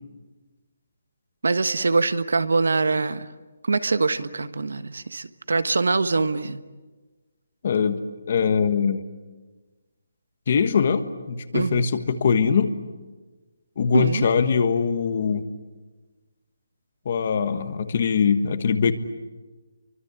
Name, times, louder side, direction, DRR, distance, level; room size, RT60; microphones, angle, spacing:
voice 1, 1.4-3.3 3.6-6.6 11.5-11.8 13.9-14.4, right 3 dB, 80° right, 12 dB, 1.4 m, -23 dB
voice 2, 7.6-9.0 10.5-12.7 13.8-15.4 17.0-18.9, left 6 dB, 30° left, 11 dB, 1.4 m, -22 dB
30.0 x 24.5 x 8.3 m, 1.3 s
hypercardioid pair, 180°, 0 cm